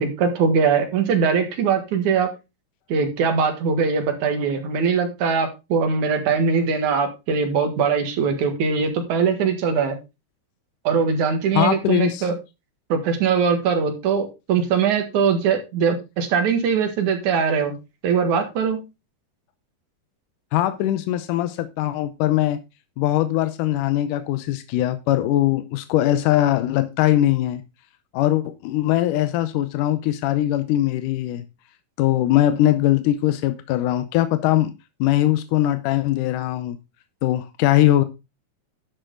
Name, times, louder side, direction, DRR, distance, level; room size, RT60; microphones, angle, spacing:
voice 1, 0.0-2.3 2.9-10.0 10.8-12.3 12.9-17.7 18.0-18.8, right 6 dB, 65° right, 3.1 m, -21 dB
voice 2, 11.5-12.3 20.5-22.6 23.0-27.6 28.1-31.5 32.0-34.7 35.0-36.8 37.2-38.0, left 14 dB, 80° left, 2.2 m, -21 dB
11.0 x 6.6 x 3.8 m
omnidirectional pair, 3.7 m